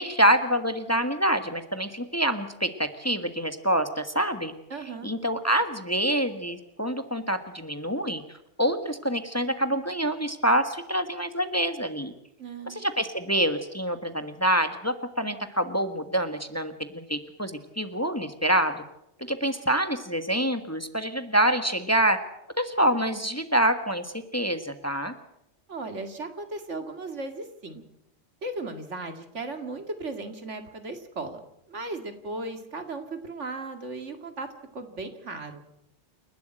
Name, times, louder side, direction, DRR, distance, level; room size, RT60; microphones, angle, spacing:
voice 1, 0.0-4.5 5.0-8.2 8.6-12.1 12.6-18.8 19.3-22.2 22.6-25.1, right 1 dB, 15° left, 8 dB, 1.4 m, -26 dB
voice 2, 4.7-5.1 12.4-12.8 25.7-27.8 28.4-31.4 31.7-35.6, right 2 dB, 75° right, 7 dB, 2.5 m, -36 dB
29.0 x 12.0 x 9.0 m, 0.82 s
omnidirectional pair, 1.2 m